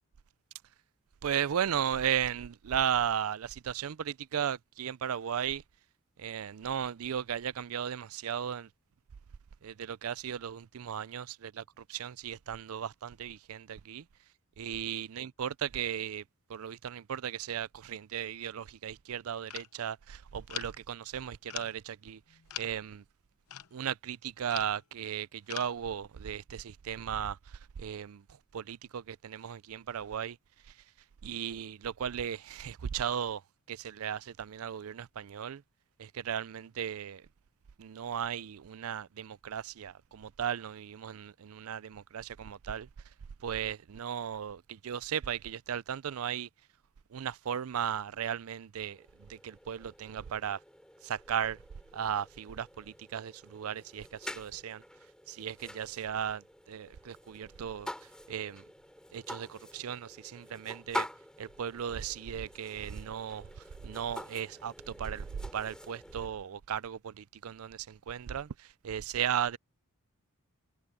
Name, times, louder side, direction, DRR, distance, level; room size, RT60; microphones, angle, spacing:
voice 1, 1.2-5.6 6.2-8.7 9.6-11.6 11.9-14.0 14.6-16.2 16.5-22.2 22.6-23.0 23.7-27.4 27.8-28.2 28.5-30.4 31.2-33.4 33.7-35.6 36.0-37.2 37.8-42.9 43.4-46.5 47.1-49.0 49.3-50.6 51.0-51.6 51.9-54.8 55.3-56.4 56.7-57.9 58.3-58.6 59.1-61.1 61.4-63.5 63.8-65.3 65.5-68.5 68.8-69.6, right 8 dB, 75° right, 0.4 m, -36 dB
sound 1, 19.5-19.7 20.5-20.8 21.5-21.8 22.3-22.8 23.5-23.8 24.5-24.8 25.5-25.7, left 12 dB, 85° left, 0.8 m, -41 dB
sound 2, 48.8-66.3, left 1 dB, 5° left, 5.3 m, -46 dB
head